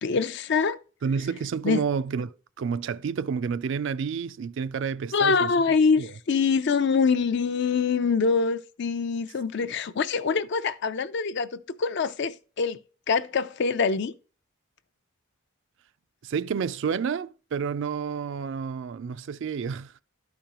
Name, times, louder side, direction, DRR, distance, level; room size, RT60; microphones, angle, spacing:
voice 1, 0.0-0.8 1.6-1.8 5.1-12.8 13.1-14.1, left 5 dB, 55° left, 0.5 m, -24 dB
voice 2, 1.0-5.5 6.0-6.1 16.2-20.0, right 6 dB, 60° right, 0.3 m, -30 dB
12.5 x 5.1 x 2.9 m
head